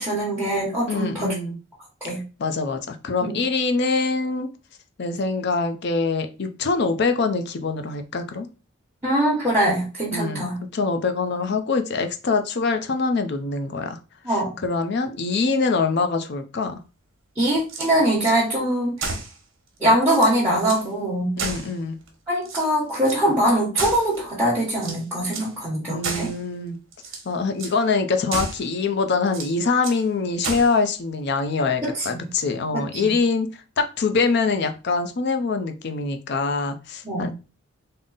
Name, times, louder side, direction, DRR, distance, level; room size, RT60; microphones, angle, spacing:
voice 1, 0.0-1.3 2.0-2.2 3.2-3.3 9.0-10.6 14.2-14.5 17.3-19.1 19.8-21.4 22.3-26.3 31.8-32.1 32.7-33.1 37.0-37.3, right 1 dB, 10° right, 1.1 m, -22 dB
voice 2, 0.9-1.6 2.1-4.5 5.0-8.5 10.1-14.0 14.3-16.8 21.4-22.0 25.9-26.8 27.3-33.5 33.8-37.3, left 4 dB, 55° left, 0.5 m, -24 dB
sound 1, 17.6-18.4 19.0-19.4 19.8-19.9 20.1-20.9 21.4-22.1 22.4-23.2 23.7-24.3 24.8-25.5 26.0-26.4 26.9-27.3 27.6-27.8 28.3-28.7 29.3-30.0 30.4-30.8, right 3 dB, 75° right, 1.0 m, -32 dB
3.7 x 2.0 x 3.9 m
head